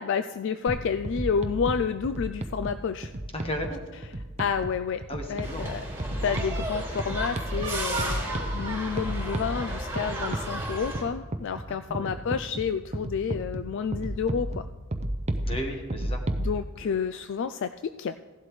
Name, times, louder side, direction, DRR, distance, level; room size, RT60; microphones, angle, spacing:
voice 1, 0.0-3.1 4.4-5.0 5.3-5.8 6.2-14.7 16.4-18.1, left 6 dB, 60° left, 11 dB, 0.4 m, -30 dB
sound 1, 0.7-16.5, right 1 dB, 30° right, 0.7 m, -34 dB
voice 2, 3.3-3.8 5.1-5.8 6.1-6.3 11.7-12.2 15.4-16.2 16.8-16.9, equal, 25° left, 3 dB, 1.5 m, -35 dB
sound 2, 5.4-11.0, right 1 dB, 15° right, 3.3 m, -33 dB
16.0 x 11.5 x 3.2 m, 1.3 s
head